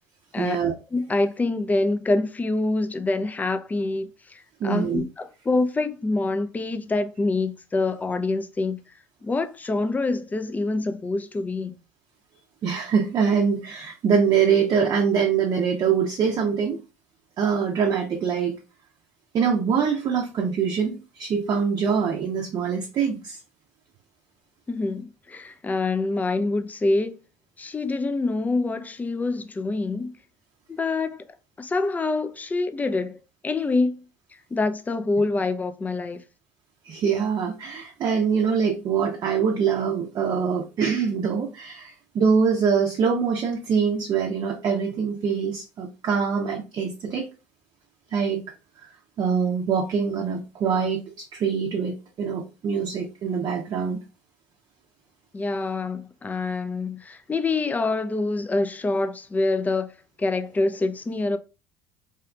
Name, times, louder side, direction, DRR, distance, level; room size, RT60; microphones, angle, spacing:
voice 1, 0.4-0.7 4.6-5.0 12.6-16.8 17.4-18.5 19.3-23.4 36.8-47.3 48.1-48.4 49.2-54.0, right 6 dB, 50° right, 0.6 m, -24 dB
voice 2, 0.9-8.8 9.2-11.8 24.7-27.2 27.6-30.1 30.7-31.2 31.6-33.2 33.4-34.0 34.5-36.2 55.3-59.9 60.2-61.4, left 3 dB, 20° left, 0.4 m, -26 dB
2.8 x 2.4 x 2.3 m
hypercardioid pair, 60°, 9 cm